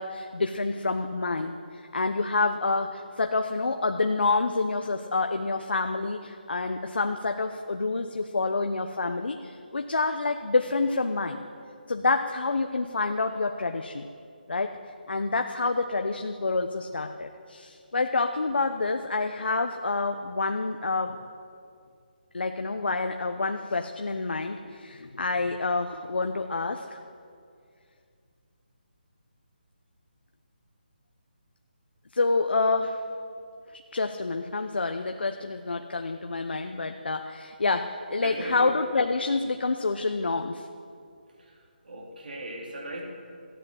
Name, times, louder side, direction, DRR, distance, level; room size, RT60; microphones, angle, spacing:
voice 1, 0.0-11.4 11.9-14.1 14.5-14.8 15.1-21.2 22.3-27.0 32.1-33.0 33.7-40.7, left 3 dB, 85° left, 5 dB, 0.9 m, -28 dB
voice 2, 38.2-38.7 41.4-43.0, right 1 dB, 60° right, 0 dB, 3.8 m, -38 dB
15.0 x 10.5 x 7.9 m, 2.3 s
hypercardioid pair, 170°, 5 cm